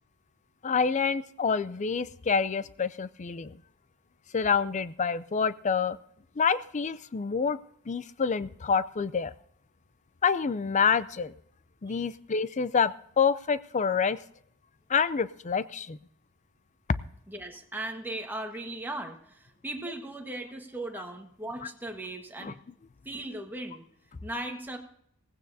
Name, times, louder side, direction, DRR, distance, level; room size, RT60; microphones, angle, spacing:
voice 1, 0.6-3.5 4.3-6.0 6.4-7.6 7.9-9.3 10.2-11.3 11.8-14.2 14.9-16.0 22.4-22.5, left 6 dB, 35° left, 15 dB, 0.5 m, -27 dB
voice 2, 17.3-22.6 23.0-23.8 24.2-24.8, right 1 dB, 10° right, 3 dB, 1.5 m, -38 dB
17.0 x 16.0 x 2.8 m, 0.67 s
head